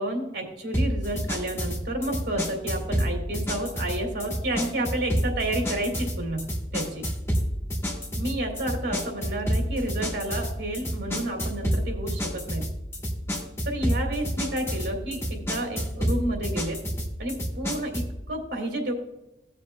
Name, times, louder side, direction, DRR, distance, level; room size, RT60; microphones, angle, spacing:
voice 1, 0.0-6.5 6.7-7.1 8.1-12.7 13.6-16.8 17.2-18.9, right 1 dB, 85° right, 2 dB, 2.7 m, -30 dB
sound 1, 0.7-18.2, equal, 15° left, 1.6 m, -29 dB
17.0 x 7.2 x 2.3 m, 0.94 s
head